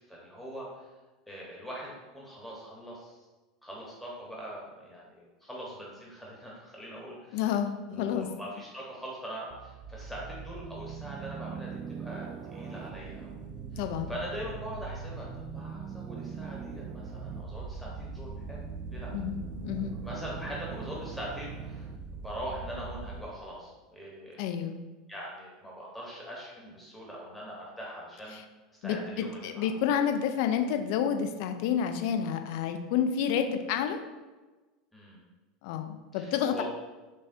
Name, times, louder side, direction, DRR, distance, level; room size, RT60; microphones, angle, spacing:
voice 1, 0.1-0.9 1.3-3.3 3.6-7.6 7.9-13.4 13.7-18.6 18.9-19.1 20.0-21.9 22.1-24.4 25.1-28.4 28.7-29.7 34.9-35.2 36.1-36.6, equal, 5° left, -5 dB, 1.0 m, -42 dB
voice 2, 7.3-8.3 13.8-14.1 19.1-20.0 24.4-24.8 28.3-28.4 28.8-34.0 35.6-36.6, left 8 dB, 60° left, 7 dB, 0.4 m, -29 dB
sound 1, 9.5-23.2, right 5 dB, 40° right, 0.4 m, -41 dB
6.2 x 2.2 x 2.6 m, 1.2 s
hypercardioid pair, 80°, 2 cm